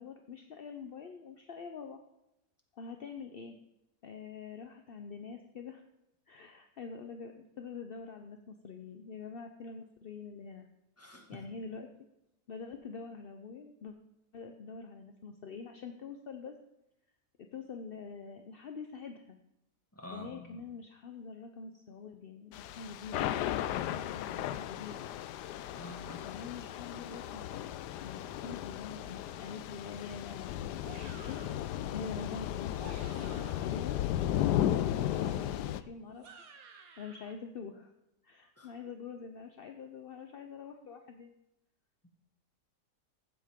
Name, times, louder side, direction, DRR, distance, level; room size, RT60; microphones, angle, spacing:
voice 1, 0.0-2.0 2.7-3.6 4.0-5.8 6.3-10.7 11.0-11.9 12.5-14.0 14.3-16.5 17.4-19.4 20.1-23.3 23.9-25.0 26.2-27.5 27.9-31.4 31.9-34.0 34.3-36.3 37.0-37.9 38.2-41.3, left 5 dB, 55° left, 5 dB, 0.7 m, -45 dB
voice 2, 11.0-11.4 19.9-20.7 25.7-26.3 38.6-38.7, left 1 dB, 10° left, 1 dB, 1.7 m, -48 dB
Thunder / Rain, 22.5-35.8, left 12 dB, 80° left, 1.1 m, -35 dB
sound 1, 30.8-31.7 32.6-33.8 35.2-37.3, right 5 dB, 60° right, 1.5 m, -53 dB
15.0 x 8.3 x 3.7 m, 0.87 s
omnidirectional pair, 1.8 m